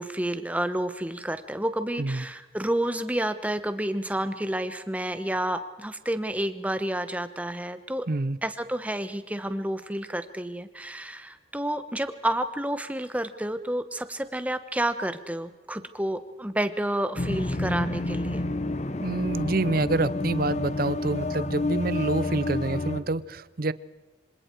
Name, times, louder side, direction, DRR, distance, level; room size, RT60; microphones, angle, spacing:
voice 1, 0.0-8.0 8.4-18.4, right 1 dB, 10° right, 10 dB, 1.0 m, -30 dB
voice 2, 8.1-8.4 19.0-23.7, right 2 dB, 50° right, 17 dB, 0.7 m, -27 dB
sound 1, 17.2-23.0, left 2 dB, 35° left, 1.0 m, -29 dB
26.5 x 26.0 x 4.6 m, 1.1 s
head